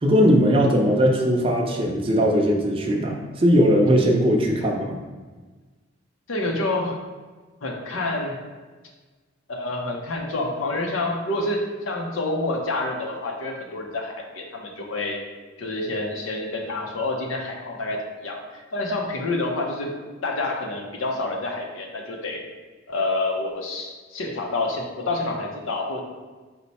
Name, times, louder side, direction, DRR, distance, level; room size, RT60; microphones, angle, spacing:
voice 1, 0.0-5.0, equal, 25° right, 1 dB, 0.5 m, -19 dB
voice 2, 6.3-7.0 7.6-8.4 9.5-15.2 15.6-18.4 18.7-19.9 20.2-22.4 22.9-26.0, left 2 dB, 85° left, 1 dB, 0.6 m, -28 dB
4.4 x 2.1 x 4.1 m, 1.3 s
head